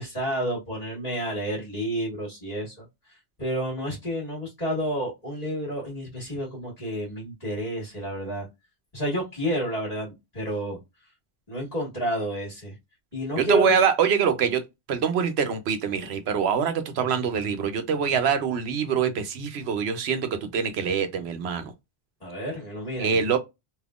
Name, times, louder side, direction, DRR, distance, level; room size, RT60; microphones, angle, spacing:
voice 1, 0.0-2.8 3.4-8.4 8.9-10.8 11.5-12.7 13.1-13.7 22.2-23.2, equal, 40° left, 1.5 m, -30 dB
voice 2, 13.4-14.6 14.9-21.7 23.0-23.4, right 7 dB, 80° right, 1.0 m, -24 dB
3.5 x 2.7 x 2.4 m
omnidirectional pair, 1.1 m